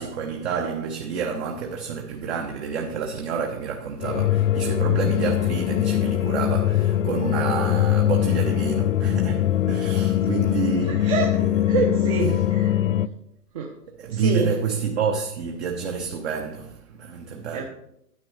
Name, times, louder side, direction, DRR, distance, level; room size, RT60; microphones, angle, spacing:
voice 1, 0.0-11.9 13.9-17.6, right 5 dB, 40° right, 1.0 m, -29 dB
sound 1, 4.0-13.1, left 12 dB, 55° left, 0.5 m, -22 dB
voice 2, 11.7-12.8 13.5-13.7 14.1-14.5 17.5-17.6, right 4 dB, 20° right, 0.7 m, -25 dB
9.8 x 9.6 x 3.3 m
hypercardioid pair, 140°, 49 cm